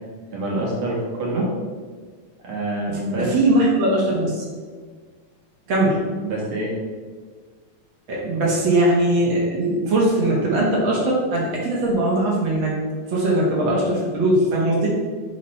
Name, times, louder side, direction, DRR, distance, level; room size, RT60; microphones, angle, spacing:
voice 1, 0.3-1.5 2.4-3.3 6.2-6.7, right 1 dB, 65° right, -3 dB, 1.3 m, -26 dB
voice 2, 2.9-4.4 5.7-6.0 8.1-12.7 13.1-15.0, right 1 dB, 85° right, -4 dB, 1.0 m, -20 dB
9.3 x 3.2 x 4.1 m, 1.5 s
omnidirectional pair, 4.2 m